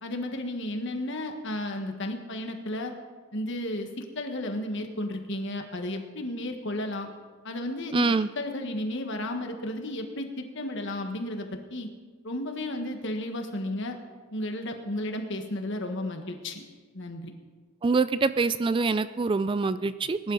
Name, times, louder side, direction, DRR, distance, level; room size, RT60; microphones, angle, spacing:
voice 1, 0.0-2.9 3.3-7.1 7.4-11.9 12.2-14.0 14.3-16.6 16.9-17.3, left 1 dB, 60° left, 4 dB, 1.6 m, -33 dB
voice 2, 7.9-8.3 17.8-20.3, right 4 dB, 25° right, 13 dB, 0.3 m, -25 dB
20.5 x 11.0 x 4.1 m, 1.5 s
head